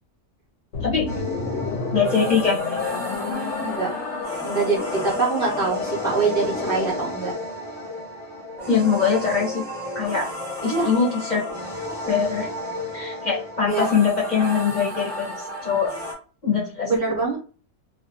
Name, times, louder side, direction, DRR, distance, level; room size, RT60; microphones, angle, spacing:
sound 1, 0.7-7.2, left 4 dB, 70° left, 0.9 m, -30 dB
sound 2, 1.1-16.1, left 1 dB, ahead, 0.8 m, -33 dB
voice 1, 1.9-2.8 8.7-9.6 9.9-10.3 10.6-11.4 12.1-12.5 12.9-15.9 16.4-16.9, left 6 dB, 40° left, -4 dB, 0.7 m, -22 dB
voice 2, 4.4-7.3 10.7-10.9 13.7-13.9 16.8-17.4, right 4 dB, 55° right, -2 dB, 0.7 m, -24 dB
2.3 x 2.2 x 2.6 m, 0.37 s
omnidirectional pair, 1.4 m